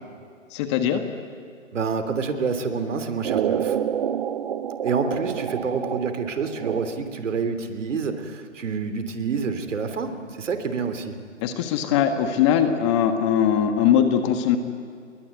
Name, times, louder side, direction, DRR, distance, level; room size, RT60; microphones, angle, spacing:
voice 1, 0.5-1.0 11.4-14.6, left 9 dB, 20° left, 8 dB, 1.4 m, -21 dB
voice 2, 1.7-3.8 4.8-11.2, right 5 dB, 65° right, 9 dB, 3.1 m, -27 dB
sound 1, 3.2-7.3, right 9 dB, 45° right, 1.1 m, -28 dB
29.5 x 21.5 x 9.5 m, 2.2 s
hypercardioid pair, 155°, 39 cm